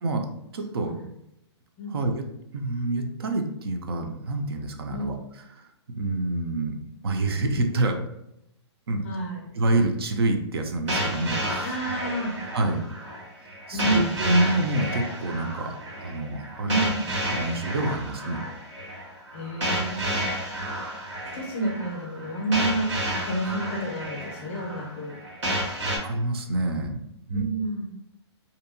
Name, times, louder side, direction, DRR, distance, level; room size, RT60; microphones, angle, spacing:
voice 1, 0.5-0.9 1.9-2.2 2.5-5.2 5.6-5.7 6.0-6.7 7.0-8.0 8.9-9.0 9.5-11.8 12.0-12.1 12.5-12.8 13.7-16.8 17.3-18.4 26.0-27.0 27.3-27.4, right 2 dB, 60° right, 5 dB, 0.4 m, -27 dB
voice 2, 9.0-9.5 11.6-12.4 13.7-14.1 16.6-17.1 19.3-20.5 21.3-22.9 23.2-25.1 27.3-27.9, right 2 dB, 30° left, -3 dB, 0.5 m, -29 dB
sound 1, 10.9-26.0, equal, 90° right, 1.2 m, -31 dB
2.7 x 2.1 x 2.6 m, 0.83 s
hypercardioid pair, 180°, 15 cm